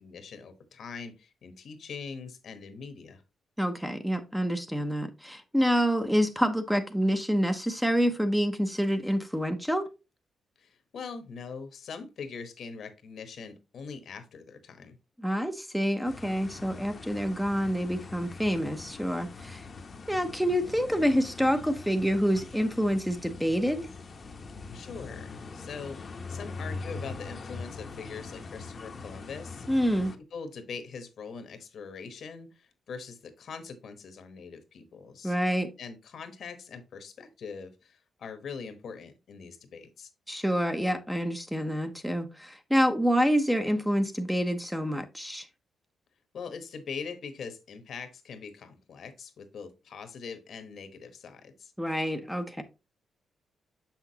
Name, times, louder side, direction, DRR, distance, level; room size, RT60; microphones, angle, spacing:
voice 1, 0.0-3.2 10.6-15.0 24.7-29.7 30.3-35.4 35.8-40.1 46.3-51.7, left 5 dB, 60° left, 1.0 m, -42 dB
voice 2, 3.6-9.9 15.2-19.6 20.1-23.9 29.7-30.1 35.2-35.7 40.3-45.5 51.8-52.6, equal, ahead, 0.6 m, -27 dB
sound 1, 16.0-30.2, left 4 dB, 35° left, 0.7 m, -42 dB
6.9 x 5.9 x 2.7 m
wide cardioid pair, 145°, 0 cm